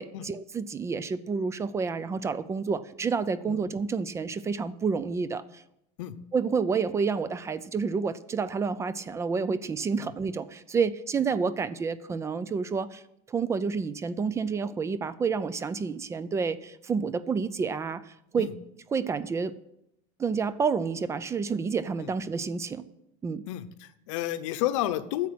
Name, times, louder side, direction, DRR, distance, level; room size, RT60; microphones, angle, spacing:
voice 1, 0.0-5.6 6.3-13.0 13.3-18.5 18.9-19.6 20.2-22.9 23.2-23.4, right 5 dB, 20° right, 17 dB, 0.4 m, -29 dB
voice 2, 23.5-25.3, left 13 dB, 80° left, 11 dB, 0.9 m, -31 dB
10.0 x 7.2 x 7.8 m, 0.80 s
supercardioid pair, 145°, 16 cm